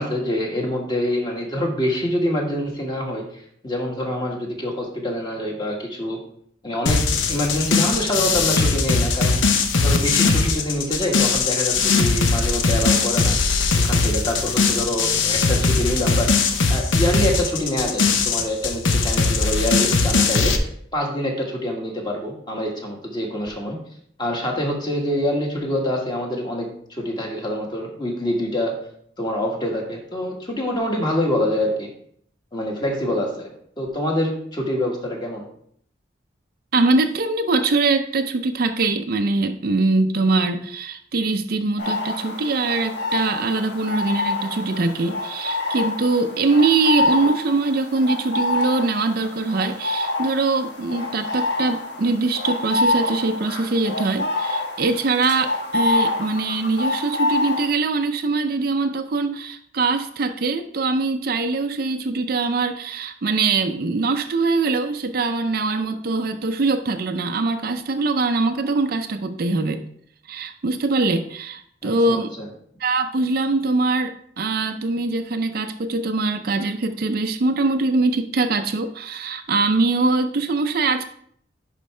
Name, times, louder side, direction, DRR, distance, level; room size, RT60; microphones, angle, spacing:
voice 1, 0.0-3.2 3.6-6.2 6.6-9.4 9.8-13.4 13.8-16.3 16.7-23.8 24.2-28.7 29.2-31.9 32.5-35.5 71.8-72.2, left 1 dB, 25° left, 0 dB, 1.5 m, -25 dB
sound 1, 6.9-20.6, left 4 dB, 85° left, 0.8 m, -20 dB
sound 2, 14.7-14.8 15.2-16.1 16.5-17.6 17.9-20.2, right 1 dB, 20° right, 0.8 m, -40 dB
voice 2, 36.7-69.8 70.3-72.3 72.8-81.0, right 3 dB, 50° right, 8 dB, 0.5 m, -22 dB
sound 3, 41.8-57.7, left 2 dB, 60° left, 1.2 m, -26 dB
10.5 x 4.6 x 3.2 m, 0.64 s
head